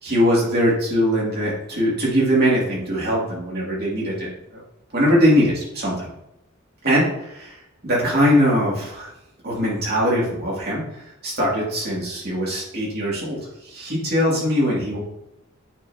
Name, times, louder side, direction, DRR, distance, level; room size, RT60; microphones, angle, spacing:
voice 1, 0.0-4.6 4.9-6.1 6.8-7.5 7.8-9.1 9.4-10.8 11.2-13.4 13.6-15.0, equal, 50° right, -5 dB, 2.4 m, -21 dB
8.7 x 4.2 x 2.8 m, 0.86 s
head